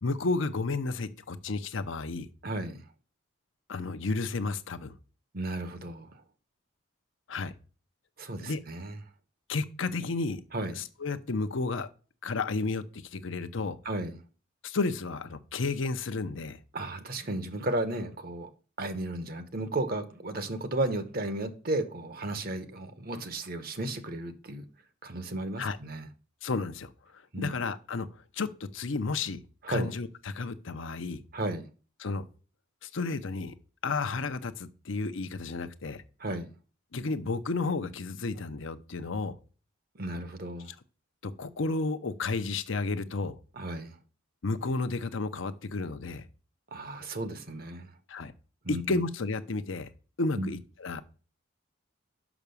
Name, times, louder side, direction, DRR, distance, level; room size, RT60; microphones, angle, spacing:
voice 1, 0.0-2.3 3.7-5.0 7.3-7.5 8.4-8.6 9.5-10.4 10.8-11.9 12.2-13.8 14.6-16.6 25.6-25.8 26.4-28.1 28.3-29.4 29.7-31.2 32.0-32.2 32.8-33.5 33.8-36.0 36.9-39.4 41.2-43.4 44.4-46.2 48.1-48.3 48.7-49.9 50.2-51.0, left 3 dB, 70° left, 0.7 m, -32 dB
voice 2, 2.4-2.8 5.3-6.2 8.2-9.0 10.5-10.8 13.8-14.2 16.7-18.5 18.8-24.6 25.0-26.1 27.3-27.6 29.6-29.9 31.3-31.7 36.2-36.5 39.9-40.7 43.6-44.0 46.7-47.9 48.6-49.0 50.4-50.5, right 2 dB, 45° right, 0.9 m, -34 dB
6.0 x 5.9 x 6.8 m
head